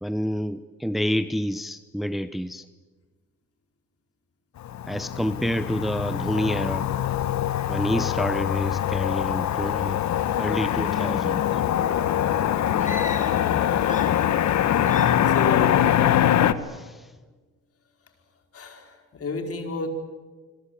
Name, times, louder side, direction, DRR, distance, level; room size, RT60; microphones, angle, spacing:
voice 1, 0.0-2.6 4.9-6.9 7.7-10.0 10.4-11.5 16.6-17.0, equal, ahead, 12 dB, 0.9 m, -28 dB
Motor vehicle (road), 4.6-16.5, left 11 dB, 65° left, 1.3 m, -23 dB
sound 1, 12.8-13.5 13.8-14.5 14.8-15.4, left 3 dB, 25° left, 3.7 m, -37 dB
voice 2, 15.3-15.9 18.5-19.9, left 4 dB, 50° left, 5 dB, 4.8 m, -31 dB
26.0 x 22.0 x 8.5 m, 1.3 s
cardioid pair, 90°, 30 cm